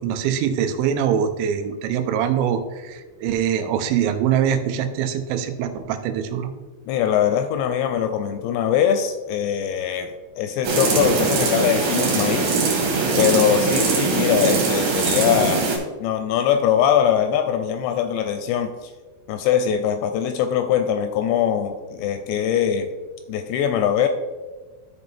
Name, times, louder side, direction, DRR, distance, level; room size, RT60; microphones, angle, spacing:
voice 1, 0.0-6.5, right 8 dB, 85° right, 8 dB, 3.1 m, -23 dB
voice 2, 6.9-12.6 13.2-15.7 16.0-18.9 19.3-22.9 23.3-24.1, left 9 dB, 85° left, 7 dB, 2.6 m, -22 dB
sound 1, 10.6-15.8, right 4 dB, 65° right, 3.4 m, -21 dB
13.0 x 4.4 x 3.3 m, 1.3 s
omnidirectional pair, 5.3 m